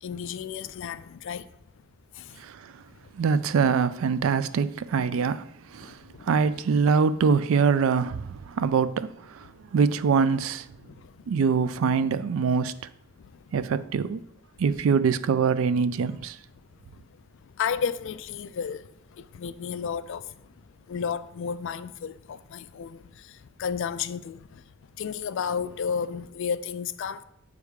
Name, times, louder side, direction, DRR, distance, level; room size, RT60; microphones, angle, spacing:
voice 1, 0.0-1.5 2.1-2.4 5.0-5.2 5.8-6.4 10.9-11.1 17.6-18.9 19.2-20.3 20.9-24.6 25.0-27.2, left 7 dB, 60° left, 0.3 m, -32 dB
voice 2, 2.4-2.7 3.2-5.4 5.7-6.0 6.3-10.7 11.3-12.7 13.5-14.2 14.6-16.4, right 5 dB, 65° right, 0.3 m, -24 dB
8.1 x 3.4 x 4.8 m
head